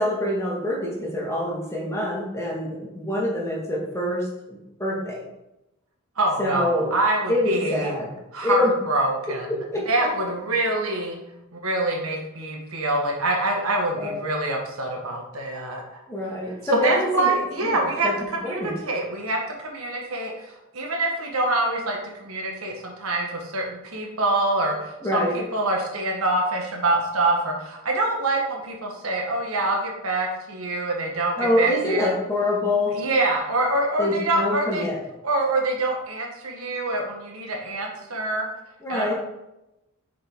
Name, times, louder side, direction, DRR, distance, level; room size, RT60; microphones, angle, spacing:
voice 1, 0.0-5.2 6.4-6.9 7.3-8.1 8.4-8.7 9.5-9.9 14.0-14.2 16.1-18.1 18.4-18.7 25.0-25.4 31.4-33.0 34.0-35.0 38.8-39.1, left 1 dB, 15° left, -3 dB, 1.7 m, -25 dB
voice 2, 6.2-7.9 8.3-9.5 9.8-11.2 11.5-16.0 16.7-32.1 32.9-34.9 35.2-38.5 38.9-39.1, right 2 dB, 80° right, 1 dB, 1.5 m, -25 dB
6.5 x 5.3 x 3.8 m, 0.92 s
head